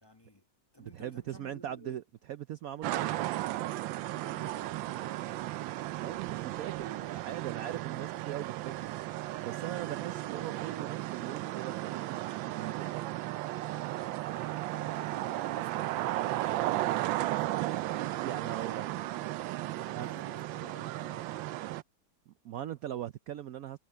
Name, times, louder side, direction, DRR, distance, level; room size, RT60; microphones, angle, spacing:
voice 1, 0.0-0.5 0.7-2.0 2.8-3.0 4.1-5.4 14.7-15.9 16.2-18.0 18.5-19.4 19.8-21.3, left 1 dB, 15° left, 1.1 m, -54 dB
voice 2, 0.8-2.0 2.3-3.1 5.9-8.9 9.4-13.0 18.2-18.9 20.0-20.1 22.3-23.8, right 11 dB, 70° right, 0.8 m, -40 dB
sound 1, 2.8-21.8, right 15 dB, 85° right, 1.4 m, -35 dB
omnidirectional pair, 2.1 m